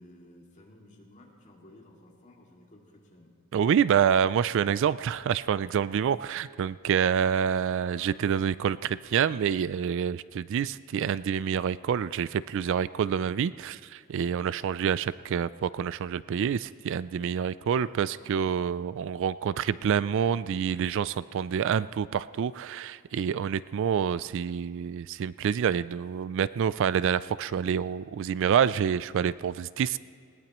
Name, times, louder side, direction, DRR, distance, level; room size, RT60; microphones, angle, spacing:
voice 1, 0.0-3.3 7.7-8.3 17.7-18.6, left 1 dB, 35° left, -1 dB, 2.3 m, -54 dB
voice 2, 3.5-30.0, right 8 dB, 60° right, 17 dB, 0.3 m, -27 dB
20.0 x 18.0 x 3.0 m, 2.4 s
head